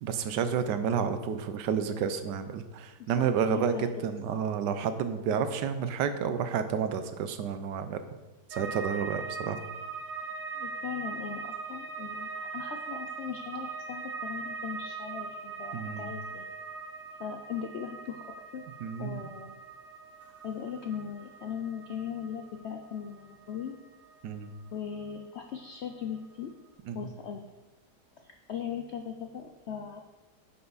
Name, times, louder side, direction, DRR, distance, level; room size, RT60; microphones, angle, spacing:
voice 1, 0.0-8.1 8.5-9.6 15.7-16.1 18.8-19.3 24.2-24.5 26.9-27.1, right 7 dB, 85° right, 10 dB, 1.3 m, -30 dB
voice 2, 3.0-4.1 10.5-16.5 17.2-18.2 18.5-18.6 19.0-19.5 20.4-23.7 24.7-26.5 26.9-27.4 28.2-30.0, left 8 dB, 75° left, 5 dB, 0.6 m, -39 dB
sound 1, 8.5-25.6 25.9-26.6, right 4 dB, 45° right, 0.6 m, -41 dB
9.6 x 5.7 x 4.0 m, 1.1 s
omnidirectional pair, 1.8 m